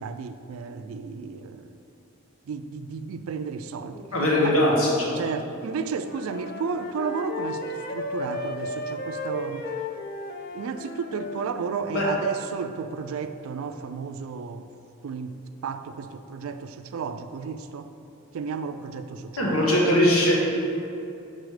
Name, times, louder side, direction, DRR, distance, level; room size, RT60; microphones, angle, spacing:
voice 1, 0.0-1.8 2.5-4.1 4.4-4.6 5.1-7.6 7.9-9.7 10.5-14.7 15.0-17.9 18.3-19.6, right 5 dB, 85° right, 9 dB, 0.3 m, -33 dB
voice 2, 4.1-5.2 11.9-12.3 19.4-20.3, left 1 dB, 90° left, -3 dB, 1.3 m, -21 dB
Wind instrument woodwind instrument, 6.0-11.5, left 1 dB, 45° left, 0.4 m, -34 dB
6.4 x 4.0 x 4.8 m, 2.7 s
head